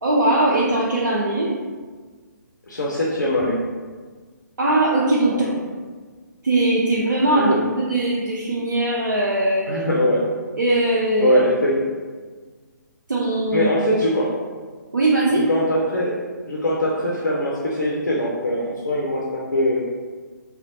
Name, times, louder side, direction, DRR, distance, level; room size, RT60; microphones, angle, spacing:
voice 1, 0.0-1.5 4.6-5.7 6.4-9.7 10.6-11.4 13.1-13.7 14.9-15.4, right 2 dB, 70° right, -5 dB, 0.4 m, -20 dB
voice 2, 2.7-3.6 5.3-5.5 7.3-7.6 9.7-10.2 11.2-11.8 13.5-14.3 15.3-16.2 16.5-19.8, left 1 dB, 65° left, -4 dB, 0.5 m, -22 dB
2.8 x 2.1 x 2.6 m, 1.5 s
figure-of-eight pair, 135°, 10 cm